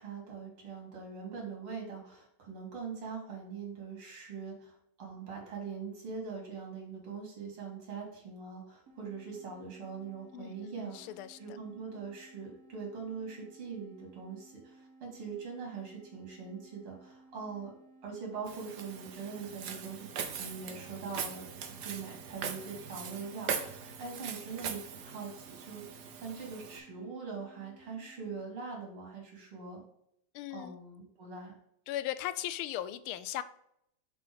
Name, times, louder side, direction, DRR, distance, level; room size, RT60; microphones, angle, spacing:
voice 1, 0.0-11.0 11.4-17.7 18.0-20.1 20.4-29.8 30.5-31.6, right 5 dB, 85° right, 0 dB, 3.3 m, -42 dB
sound 1, 8.9-28.4, right 2 dB, 45° right, 1.6 m, -59 dB
voice 2, 10.3-11.6 30.3-30.8 31.9-33.4, left 13 dB, 90° left, 14 dB, 1.5 m, -38 dB
Walk footsteps, 18.5-26.8, right 7 dB, 60° right, 1.3 m, -41 dB
7.0 x 3.9 x 5.1 m, 0.74 s
omnidirectional pair, 2.3 m